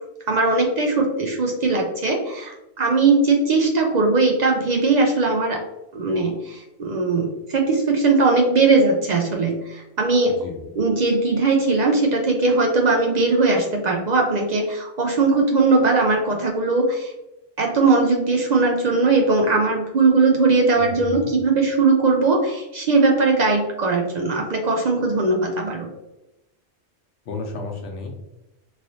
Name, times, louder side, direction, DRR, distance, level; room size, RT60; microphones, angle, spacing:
voice 1, 0.3-5.6 5.9-10.4 10.8-17.1 17.6-25.9, right 3 dB, 60° right, 1 dB, 0.4 m, -19 dB
voice 2, 10.2-10.7 20.7-21.3 27.3-28.1, left 3 dB, 75° left, 1 dB, 1.0 m, -33 dB
3.1 x 2.8 x 2.6 m, 0.91 s
omnidirectional pair, 1.1 m